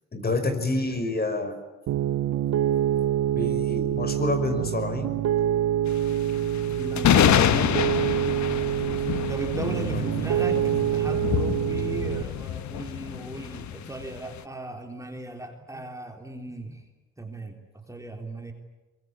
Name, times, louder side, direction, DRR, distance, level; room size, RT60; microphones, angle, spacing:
voice 1, 0.1-1.6 3.3-5.2 9.9-10.0, left 2 dB, 30° left, 8 dB, 5.6 m, -28 dB
Piano, 1.9-12.2, right 11 dB, 65° right, 1.0 m, -26 dB
sound 1, 5.9-14.4, left 10 dB, 65° left, 1.5 m, -26 dB
voice 2, 6.6-7.8 9.3-16.9 17.2-17.6 17.9-18.5, right 1 dB, 10° right, 3 dB, 3.7 m, -38 dB
23.5 x 23.0 x 9.8 m, 1.1 s
cardioid pair, 90°, 30 cm